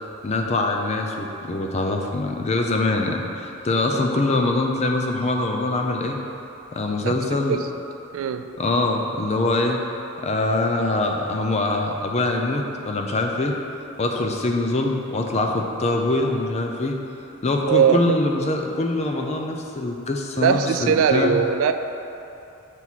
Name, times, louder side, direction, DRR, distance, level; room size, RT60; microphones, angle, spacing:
voice 1, 0.2-6.2 6.7-7.6 8.6-9.8 10.2-13.6 14.0-17.0 17.4-21.3, left 2 dB, 30° left, 2 dB, 0.5 m, -23 dB
voice 2, 7.0-7.6 8.1-8.5 17.6-18.2 20.4-21.7, right 7 dB, 65° right, 8 dB, 0.3 m, -21 dB
7.1 x 4.4 x 4.1 m, 2.8 s
head